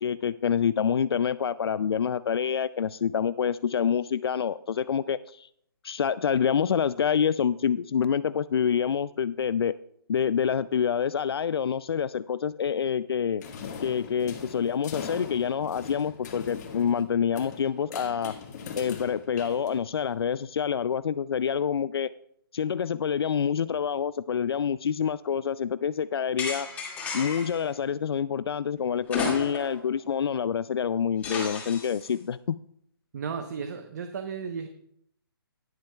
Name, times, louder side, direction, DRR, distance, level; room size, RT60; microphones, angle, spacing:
voice 1, 0.0-5.5 5.8-9.7 10.1-13.4 13.8-18.3 18.7-22.1 22.5-26.7 27.1-32.6, left 7 dB, 75° left, 15 dB, 0.4 m, -27 dB
sound 1, 13.4-20.1, left 6 dB, 45° left, 2.0 m, -41 dB
sound 2, 26.4-27.6 29.1-29.8 30.2-30.3 31.2-32.1, left 4 dB, 10° left, 2.2 m, -33 dB
voice 2, 33.1-34.7, right 6 dB, 45° right, 7 dB, 0.9 m, -34 dB
20.0 x 7.5 x 2.3 m, 0.70 s
hypercardioid pair, 160°, 13 cm